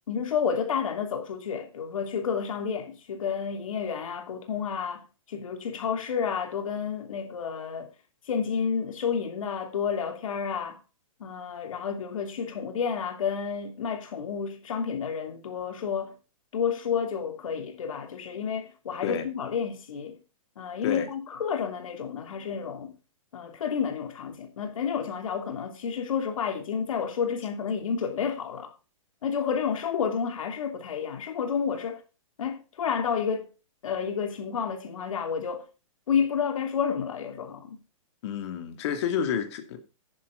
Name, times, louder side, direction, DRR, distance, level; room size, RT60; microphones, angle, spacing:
voice 1, 0.1-7.9 8.3-10.8 11.2-16.1 16.5-20.2 20.6-22.9 23.3-28.7 29.2-32.0 32.4-33.5 33.8-35.7 36.1-37.8, left 7 dB, 70° left, 2.9 m, -30 dB
voice 2, 38.2-39.8, left 8 dB, 55° left, 2.3 m, -29 dB
11.0 x 10.0 x 3.7 m
hypercardioid pair, 130°, 18 cm